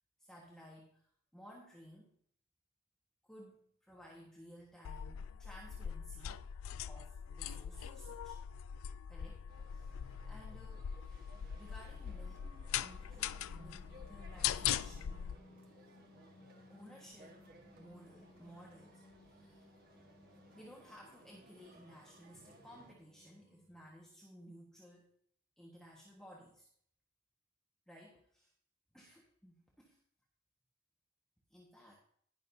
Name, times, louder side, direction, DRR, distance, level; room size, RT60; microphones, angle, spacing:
voice 1, 0.2-1.0 1.3-2.1 3.2-6.4 6.9-8.4 9.1-9.5 9.7-9.9 10.3-11.2 11.6-12.5 12.8-15.3 16.7-17.4 17.8-19.7 20.5-25.1 25.6-26.7 27.9-28.5 28.9-30.0 31.5-32.0, equal, 5° left, -4 dB, 1.4 m, -57 dB
sound 1, 4.8-15.3, left 9 dB, 85° left, 0.3 m, -41 dB
sound 2, 9.5-22.9, right 1 dB, 50° right, 1.6 m, -61 dB
Singing, 12.8-24.0, left 2 dB, 35° left, 2.5 m, -63 dB
19.0 x 6.6 x 2.7 m, 0.64 s
head